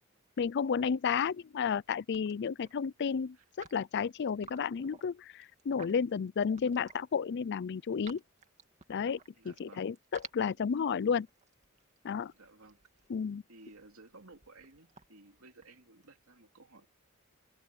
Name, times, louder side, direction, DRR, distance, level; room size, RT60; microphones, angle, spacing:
voice 1, 0.4-8.2 8.9-9.2 9.4-11.3 12.0-12.3 13.1-13.4, left 6 dB, 55° left, 0.4 m, -32 dB
sound 1, 1.9-2.0 2.1-2.8 3.4-7.1 7.5-9.6 9.9-16.0, right 5 dB, 35° right, 2.2 m, -54 dB
voice 2, 9.3-9.9 12.3-12.8 13.5-16.9, right 2 dB, 80° right, 2.9 m, -56 dB
head